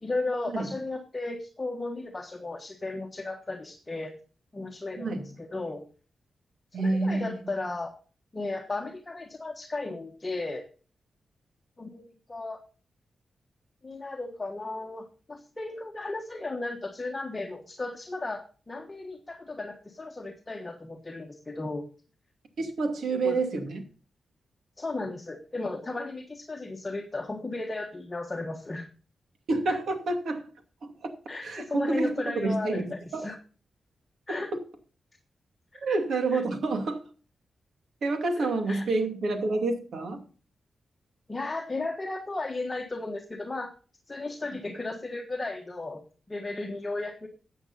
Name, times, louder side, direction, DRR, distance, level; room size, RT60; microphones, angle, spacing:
voice 1, 0.0-4.1 4.5-5.8 6.7-7.9 8.3-10.7 11.8-12.6 13.8-21.9 23.2-23.4 24.8-28.9 29.7-29.8 31.3-33.4 34.3-34.5 35.7-35.8 36.3-36.4 38.4-38.9 41.3-43.7 44.1-46.0 46.3-47.3, left 2 dB, 25° left, 1.4 m, -35 dB
voice 2, 6.7-7.3 22.6-23.8 29.5-30.5 30.8-31.1 31.4-33.3 34.3-34.4 35.8-37.0 38.0-40.2, right 3 dB, 75° right, 2.5 m, -28 dB
14.0 x 8.4 x 4.1 m
wide cardioid pair, 120°, 0 cm